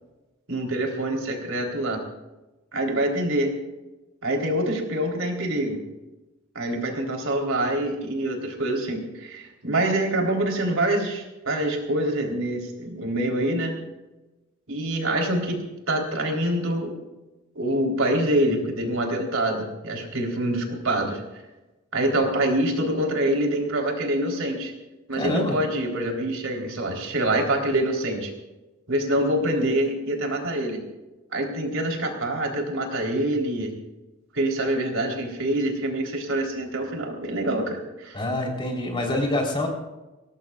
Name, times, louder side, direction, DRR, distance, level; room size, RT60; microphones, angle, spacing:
voice 1, 0.5-2.0 2.7-3.6 4.2-5.8 6.6-13.8 14.7-15.6 15.9-17.0 17.6-21.2 21.9-24.7 25.1-28.3 28.9-30.8 31.3-33.7 34.3-38.2, right 1 dB, 70° right, 1 dB, 3.8 m, -25 dB
voice 2, 25.1-25.6 38.1-39.7, left 1 dB, 25° left, 0 dB, 3.8 m, -26 dB
23.5 x 18.5 x 2.4 m, 1.1 s
head